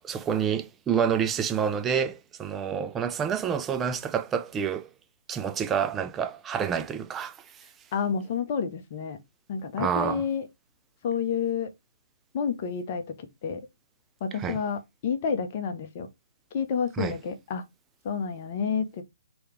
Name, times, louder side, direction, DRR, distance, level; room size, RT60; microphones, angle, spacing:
voice 1, 0.0-4.9 5.3-7.4 9.8-10.2 14.4-14.6 17.0-17.1, right 7 dB, 15° right, 0.4 m, -28 dB
voice 2, 7.9-9.2 9.5-10.5 11.0-11.7 12.3-13.6 14.2-16.1 16.5-17.6 18.0-19.0, left 6 dB, 45° left, 0.9 m, -29 dB
3.3 x 3.1 x 3.2 m
hypercardioid pair, 135°, 0 cm